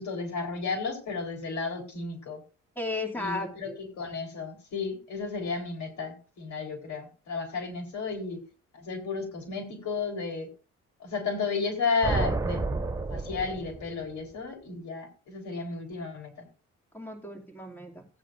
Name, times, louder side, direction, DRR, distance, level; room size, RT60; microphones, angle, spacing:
voice 1, 0.0-2.4 3.2-8.4 8.7-10.5 11.0-12.6 13.1-16.5, left 4 dB, 70° left, 3 dB, 4.0 m, -33 dB
voice 2, 2.8-3.8 16.9-18.1, left 2 dB, 5° left, 0 dB, 2.6 m, -35 dB
sound 1, 12.0-14.1, right 3 dB, 10° right, 2.9 m, -30 dB
17.0 x 9.0 x 2.6 m, 0.36 s
cardioid pair, 90°, 30 cm